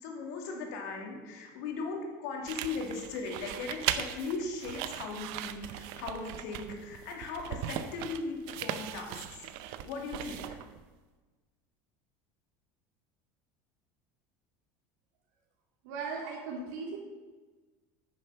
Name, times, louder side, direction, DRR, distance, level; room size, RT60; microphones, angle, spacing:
voice 1, 0.0-9.2 9.8-10.6, left 4 dB, 70° left, 1 dB, 2.3 m, -38 dB
sound 1, 2.4-10.8, right 11 dB, 50° right, 0.6 m, -39 dB
voice 2, 15.8-17.0, right 4 dB, 70° right, -2 dB, 2.2 m, -37 dB
9.8 x 6.7 x 5.6 m, 1.3 s
cardioid pair, 175°, 10 cm